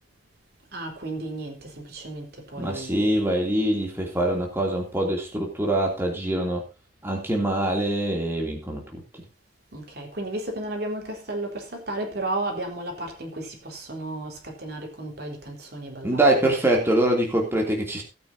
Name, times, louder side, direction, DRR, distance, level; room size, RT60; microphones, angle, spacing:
voice 1, 0.7-3.1 9.7-16.2, right 2 dB, 65° right, 4.0 m, -33 dB
voice 2, 2.6-6.6 7.0-9.0 16.0-18.0, right 1 dB, 15° right, 3.0 m, -24 dB
18.0 x 9.1 x 2.8 m
head